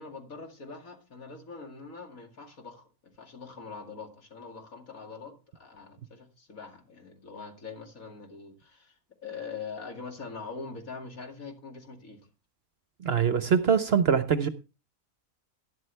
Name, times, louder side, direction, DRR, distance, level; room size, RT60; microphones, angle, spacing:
voice 1, 0.0-12.2, left 4 dB, 70° left, 2.7 m, -43 dB
voice 2, 13.0-14.5, right 7 dB, 55° right, 0.8 m, -23 dB
12.0 x 11.0 x 3.3 m
omnidirectional pair, 1.5 m